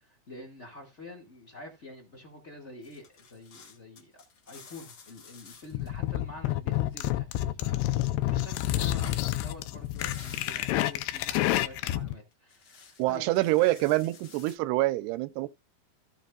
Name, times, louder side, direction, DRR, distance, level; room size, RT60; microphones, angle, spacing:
voice 1, 0.0-13.3 13.7-13.8, left 2 dB, 25° left, 1.5 m, -47 dB
sound 1, 2.8-5.9 7.8-7.9 8.5-11.3 12.3-14.6, left 5 dB, 60° left, 1.0 m, -51 dB
sound 2, 5.7-12.1, left 14 dB, 90° left, 2.8 m, -29 dB
voice 2, 13.0-15.5, right 18 dB, 90° right, 2.8 m, -26 dB
15.5 x 5.7 x 2.5 m
omnidirectional pair, 4.6 m